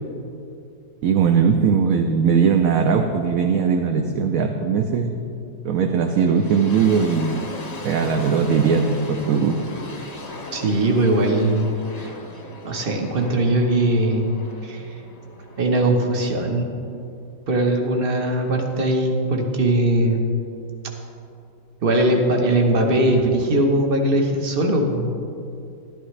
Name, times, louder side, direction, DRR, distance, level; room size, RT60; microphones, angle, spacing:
voice 1, 1.0-5.1 5.6-7.4 7.8-9.6, right 6 dB, 70° right, 4 dB, 0.8 m, -19 dB
sound 1, 6.0-17.0, left 2 dB, 25° left, 1.0 m, -38 dB
voice 2, 10.5-11.7 12.6-14.3 14.6-14.8 15.6-16.7 17.5-20.3 21.8-25.1, right 1 dB, 35° right, 2 dB, 1.1 m, -20 dB
12.5 x 12.0 x 3.2 m, 2.6 s
omnidirectional pair, 1.9 m